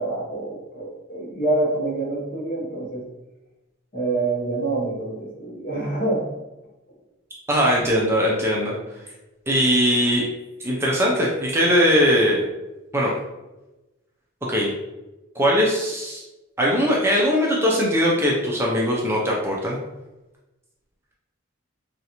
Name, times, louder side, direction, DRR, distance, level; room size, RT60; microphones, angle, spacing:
voice 1, 0.0-3.1 3.9-6.2, right 2 dB, 45° left, -4 dB, 0.9 m, -26 dB
voice 2, 7.5-8.8 9.5-10.3 10.6-12.4 12.9-13.1 14.5-14.7 15.4-16.2 16.6-19.8, equal, 10° right, -4 dB, 0.4 m, -20 dB
3.1 x 2.5 x 2.9 m, 1.1 s
head